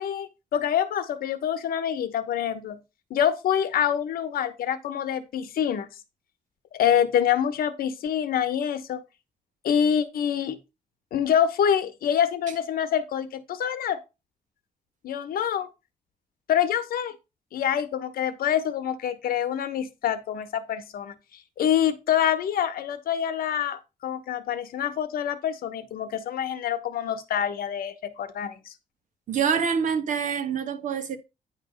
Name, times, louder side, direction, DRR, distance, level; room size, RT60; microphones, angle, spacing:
voice 1, 0.0-2.8 3.1-5.9 6.7-9.0 9.6-10.6 11.1-14.0 15.0-15.7 16.5-17.1 17.5-21.1 21.6-28.7, left 9 dB, 75° left, 1.2 m, -26 dB
voice 2, 29.3-31.2, right 6 dB, 60° right, 1.3 m, -26 dB
9.8 x 3.3 x 6.4 m
wide cardioid pair, 175°, 15 cm